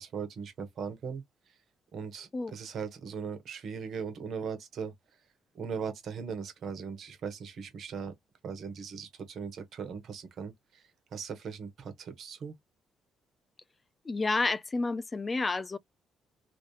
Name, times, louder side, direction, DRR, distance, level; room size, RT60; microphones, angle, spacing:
voice 1, 0.0-1.5 1.9-4.9 5.5-8.1 8.4-12.5, right 6 dB, 65° right, 1.3 m, -39 dB
voice 2, 14.1-15.8, left 3 dB, 30° left, 0.4 m, -30 dB
3.1 x 2.6 x 3.2 m
supercardioid pair, 55°, 0 cm